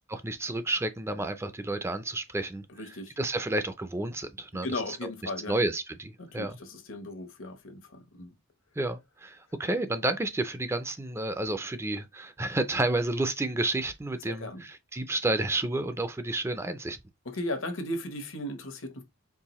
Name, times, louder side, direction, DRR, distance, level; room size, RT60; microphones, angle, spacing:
voice 1, 0.1-2.7 3.2-4.7 5.0-6.6 8.8-17.0, right 2 dB, 15° right, 0.4 m, -31 dB
voice 2, 2.7-3.1 4.6-5.5 6.2-8.3 14.3-14.6 17.2-19.0, left 1 dB, 75° left, 1.1 m, -36 dB
4.6 x 3.0 x 3.0 m
head